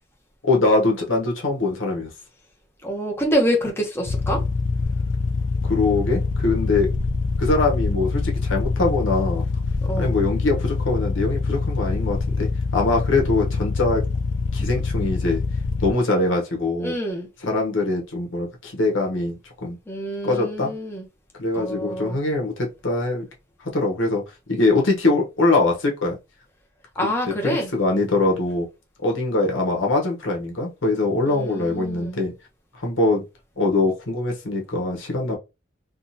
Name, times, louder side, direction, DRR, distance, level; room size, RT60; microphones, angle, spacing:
voice 1, 0.4-2.1 5.6-6.9 7.4-9.4 10.0-14.0 14.5-15.4 15.8-16.9 17.4-19.8 20.2-20.7 21.4-23.2 23.7-24.2 24.5-26.2 27.0-27.1 27.4-28.7 29.0-32.3 32.8-33.2 33.6-35.4, left 2 dB, 85° left, 1.1 m, -22 dB
voice 2, 2.8-4.4 9.8-10.2 16.8-17.3 19.9-21.1 21.5-22.2 27.0-27.7 31.2-32.2, equal, 15° left, 0.9 m, -26 dB
sound 1, 4.0-15.9, left 4 dB, 70° left, 0.5 m, -25 dB
3.6 x 2.4 x 2.8 m
head